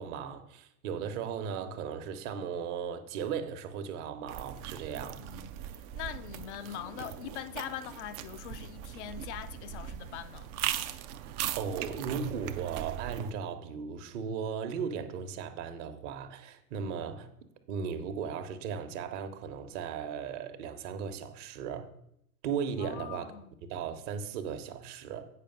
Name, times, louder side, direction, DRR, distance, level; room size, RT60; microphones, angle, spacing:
voice 1, 0.0-5.2 11.6-17.3 17.7-21.9 22.4-23.3 23.6-25.3, right 7 dB, 50° right, 1.1 m, -36 dB
sound 1, 4.3-13.3, right 11 dB, 30° right, 0.3 m, -39 dB
voice 2, 4.9-5.5 5.9-10.5 22.8-23.5, left 11 dB, 50° left, 0.5 m, -42 dB
8.5 x 5.3 x 5.2 m
figure-of-eight pair, 95°, 46 cm